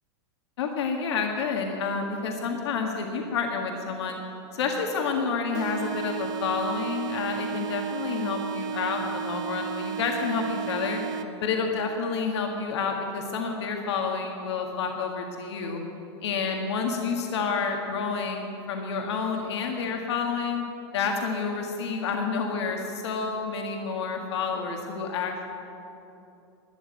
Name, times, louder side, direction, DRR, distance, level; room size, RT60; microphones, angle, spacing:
voice 1, 0.6-4.2 4.5-11.0 11.4-15.8 16.2-20.6 20.9-25.3, left 5 dB, 75° left, 2 dB, 1.7 m, -29 dB
sound 1, 5.5-11.5, right 7 dB, 30° right, 0.6 m, -33 dB
12.5 x 9.6 x 9.5 m, 2.8 s
supercardioid pair, 150°, 14 cm